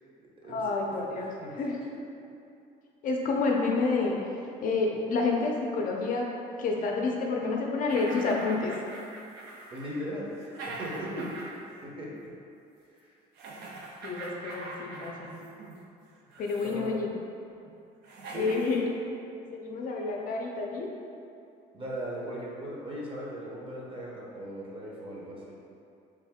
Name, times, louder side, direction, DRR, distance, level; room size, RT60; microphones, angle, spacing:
voice 1, 0.5-1.3 1.6-2.0 3.0-4.2 4.6-6.3 6.6-8.7 14.0-15.3 16.4-17.1 18.3-18.9 19.5-20.9, left 3 dB, 55° left, -1 dB, 0.5 m, -29 dB
voice 2, 1.0-1.6 9.7-11.3 11.8-12.3 12.9-13.1 16.6-17.1 18.2-18.5 21.7-25.6, equal, 30° right, -5 dB, 0.9 m, -38 dB
sound 1, 7.9-11.8 12.1-12.3 13.4-15.8 16.3-16.9 17.7-17.8 18.0-18.8, right 2 dB, 80° right, 0.6 m, -43 dB
3.5 x 2.6 x 3.5 m, 2.6 s
cardioid pair, 110°, 17 cm